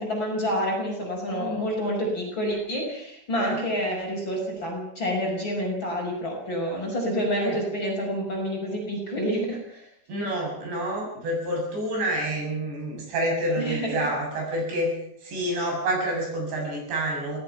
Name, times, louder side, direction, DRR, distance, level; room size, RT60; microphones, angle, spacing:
voice 1, 0.0-9.8 13.6-14.1, equal, 25° left, -1 dB, 6.1 m, -28 dB
voice 2, 1.3-1.6 3.3-3.6 7.3-7.6 10.1-14.9 15.2-17.4, right 1 dB, 60° right, 0 dB, 9.1 m, -28 dB
26.0 x 18.0 x 5.8 m, 0.72 s
omnidirectional pair, 5.6 m